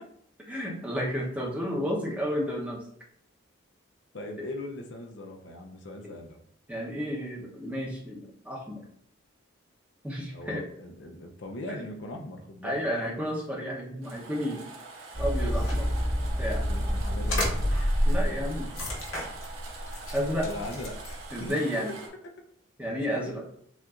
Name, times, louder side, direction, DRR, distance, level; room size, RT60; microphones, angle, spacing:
voice 1, 0.5-2.8 6.0-6.1 6.7-8.8 10.0-10.6 12.6-14.6 15.2-15.9 16.4-16.6 18.1-18.7 20.1-20.5 21.3-21.9 22.8-23.4, equal, 5° right, -3 dB, 0.8 m, -31 dB
voice 2, 4.1-6.4 10.3-12.8 16.7-17.6 20.4-21.0 21.4-21.6 23.1-23.3, left 1 dB, 60° left, 3 dB, 0.6 m, -39 dB
sound 1, 14.0-22.1, right 3 dB, 75° right, 1.0 m, -44 dB
sound 2, 15.1-21.5, equal, 85° left, 1.5 m, -29 dB
7.1 x 2.5 x 2.4 m, 0.67 s
head